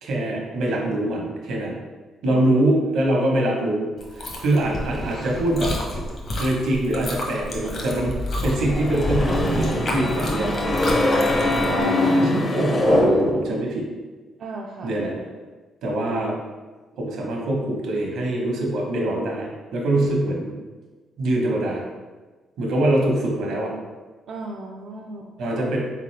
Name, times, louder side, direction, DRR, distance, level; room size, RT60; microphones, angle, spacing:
voice 1, 0.0-1.8 2.2-5.8 6.4-8.1 8.4-13.9 14.8-15.3 15.8-16.4 17.0-20.5 21.2-21.8 22.6-23.8 25.4-25.8, right 1 dB, 80° right, -1 dB, 1.0 m, -24 dB
voice 2, 2.2-2.9 14.4-15.0 24.3-25.4, right 2 dB, 60° right, -1 dB, 0.4 m, -36 dB
Chewing mastication, 4.0-11.8, left 1 dB, 50° left, 1.0 m, -31 dB
Fire, 7.8-10.3, left 2 dB, 85° left, 0.8 m, -34 dB
sound 1, 8.4-13.6, left 1 dB, 30° left, 0.7 m, -22 dB
3.9 x 3.8 x 3.2 m, 1.3 s
cardioid pair, 90°, 0 cm